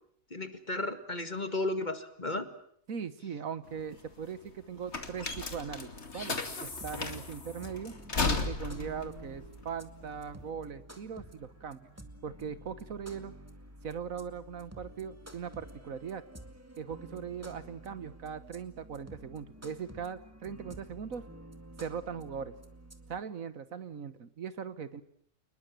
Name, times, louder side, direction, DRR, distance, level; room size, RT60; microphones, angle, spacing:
voice 1, 0.3-2.5, left 2 dB, 30° left, 10 dB, 2.1 m, -34 dB
voice 2, 2.9-5.9 6.1-7.9 8.4-11.9 12.2-13.3 13.8-16.2 16.8-21.2 21.8-22.5 23.1-25.0, right 7 dB, 70° right, 14 dB, 1.7 m, -40 dB
sound 1, 3.7-10.4, left 3 dB, 50° left, 2.7 m, -35 dB
sound 2, 6.7-23.2, right 1 dB, 10° right, 2.1 m, -51 dB
29.0 x 21.0 x 7.6 m, 0.66 s
omnidirectional pair, 1.5 m